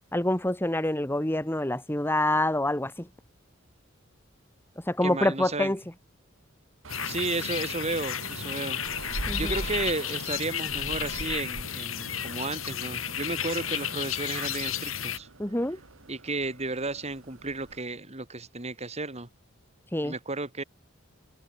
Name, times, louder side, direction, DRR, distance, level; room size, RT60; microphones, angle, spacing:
voice 1, 0.1-3.1 4.9-5.8 9.3-9.5 15.4-15.8 19.9-20.1, left 1 dB, 10° left, 1.8 m, -26 dB
voice 2, 5.0-5.7 7.1-8.8 9.4-15.3 16.1-19.3 20.0-20.6, right 3 dB, 35° right, 2.6 m, -33 dB
sound 1, 6.8-17.8, right 2 dB, 75° right, 2.3 m, -42 dB
sound 2, 6.9-15.2, left 9 dB, 85° left, 5.4 m, -33 dB
open air
head